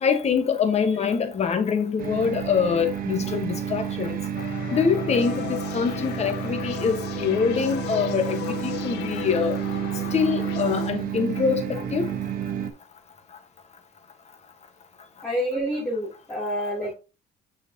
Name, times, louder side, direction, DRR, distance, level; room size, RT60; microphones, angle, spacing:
voice 1, 0.0-4.2 4.7-9.6 10.1-12.1, left 6 dB, 40° left, 1.4 m, -24 dB
sound 1, 2.0-12.7, right 9 dB, 55° right, 1.0 m, -30 dB
sound 2, 4.3-10.9, left 14 dB, 90° left, 0.5 m, -36 dB
voice 2, 15.2-16.9, equal, 10° left, 3.1 m, -28 dB
6.6 x 5.7 x 2.9 m
cardioid pair, 110°, 17 cm